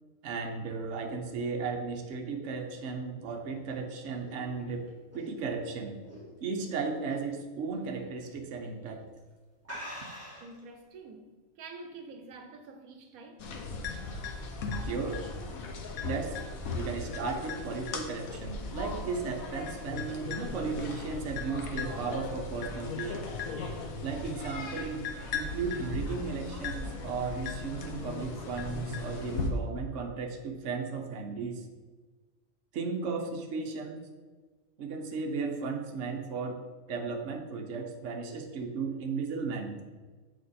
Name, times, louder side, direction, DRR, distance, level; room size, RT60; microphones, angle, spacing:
voice 1, 0.2-4.9 5.1-6.0 6.4-9.1 14.8-15.2 16.0-16.4 16.7-23.3 24.0-25.1 25.3-31.7 32.7-34.0 34.8-36.6 36.9-39.8, right 4 dB, 65° right, 1.1 m, -35 dB
sound 1, 3.5-6.6 7.0-7.4 7.7-7.8 8.7-8.9 9.2-9.3 9.6-10.6, equal, 10° right, 1.9 m, -45 dB
voice 2, 10.4-13.5 14.1-14.2, right 3 dB, 85° right, 1.2 m, -47 dB
sound 2, 13.4-29.5, left 4 dB, 75° left, 1.3 m, -37 dB
7.7 x 4.4 x 4.1 m
omnidirectional pair, 1.5 m